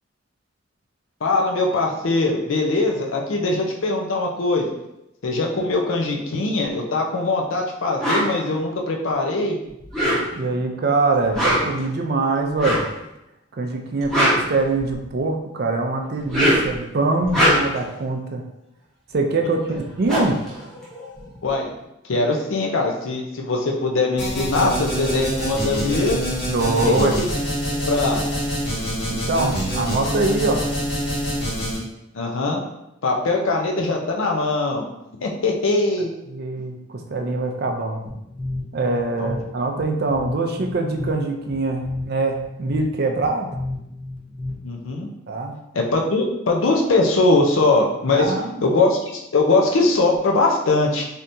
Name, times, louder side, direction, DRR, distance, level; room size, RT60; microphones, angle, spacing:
voice 1, 1.2-4.7 5.2-9.6 19.4-19.5 21.4-21.7 22.1-26.2 26.8-27.3 27.7-28.2 32.1-32.6 33.0-34.9 35.2-36.1 39.2-39.3 44.6-45.1 45.7-48.3 48.6-51.0, left 2 dB, 80° left, 1 dB, 0.5 m, -21 dB
sound 1, 8.0-8.3 9.8-10.5 11.2-11.8 12.6-12.9 13.9-15.1 16.1-16.8 17.2-17.9 19.4-19.5 19.7-21.4, equal, 5° left, 0.9 m, -22 dB
voice 2, 10.4-12.8 13.6-18.4 19.1-20.4 26.4-27.2 29.1-30.6 36.3-38.1 38.7-43.5 45.3-45.6 48.1-48.7, right 3 dB, 50° right, 3 dB, 0.4 m, -23 dB
sound 2, 24.2-31.8, equal, 55° left, 1.3 m, -25 dB
sound 3, 38.1-44.9, left 2 dB, 25° left, 0.6 m, -33 dB
3.4 x 2.7 x 2.6 m, 0.87 s
head